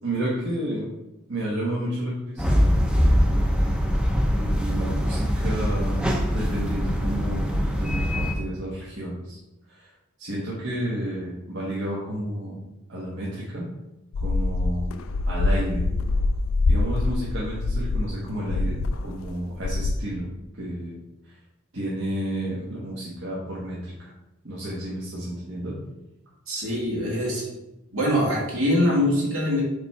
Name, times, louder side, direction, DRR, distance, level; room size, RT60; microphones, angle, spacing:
voice 1, 0.0-0.9 1.3-3.4 4.3-6.0 6.3-9.4 9.7-9.9 10.2-12.6 12.9-13.7 14.2-14.9 15.3-15.9 16.7-18.8 19.0-20.2 20.6-21.0 21.2-21.4 21.7-24.1 24.4-25.7, right 1 dB, 55° right, -7 dB, 1.3 m, -31 dB
sound 1, 2.4-8.3, equal, 5° right, 0.6 m, -23 dB
sound 2, 14.1-19.3 19.6-19.9, left 2 dB, 70° left, 0.4 m, -25 dB
voice 2, 26.5-27.4 27.9-29.6, left 1 dB, 70° right, -4 dB, 2.3 m, -23 dB
5.1 x 4.2 x 4.6 m, 0.95 s
head